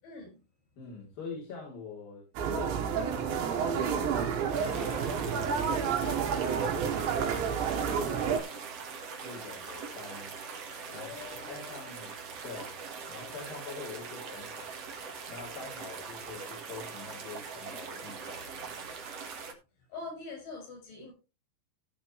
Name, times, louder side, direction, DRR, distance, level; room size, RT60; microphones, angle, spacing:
voice 1, 0.0-0.4 10.9-12.0 19.9-21.1, left 4 dB, 80° left, 2 dB, 8.3 m, -44 dB
voice 2, 0.8-4.1 4.6-8.7 9.2-10.3 10.9-11.2 11.5-14.7 15.3-18.8, left 4 dB, 55° left, -4 dB, 4.9 m, -45 dB
sound 1, 2.4-8.4, right 7 dB, 80° right, 3.7 m, -30 dB
sound 2, 4.5-19.5, right 5 dB, 55° right, 1.9 m, -42 dB
16.5 x 6.7 x 3.2 m, 0.29 s
omnidirectional pair, 5.2 m